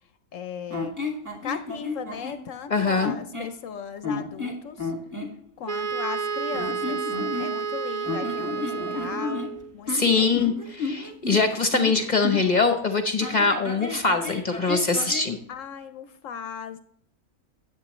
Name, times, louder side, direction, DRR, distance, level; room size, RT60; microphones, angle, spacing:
voice 1, 0.3-0.9 1.4-4.9 5.6-7.0 7.4-10.5 15.5-16.8, left 7 dB, 65° left, 10 dB, 0.9 m, -37 dB
sound 1, 0.7-2.4 3.0-3.6 4.0-5.3 6.5-7.7 8.0-12.6 13.2-15.3, left 3 dB, 10° right, 1.7 m, -32 dB
voice 2, 2.7-3.2 9.9-15.4, left 4 dB, 40° left, 7 dB, 0.7 m, -23 dB
Wind instrument woodwind instrument, 5.7-9.7, right 6 dB, 55° right, 0.3 m, -30 dB
10.5 x 8.3 x 3.1 m, 0.62 s
omnidirectional pair, 1.6 m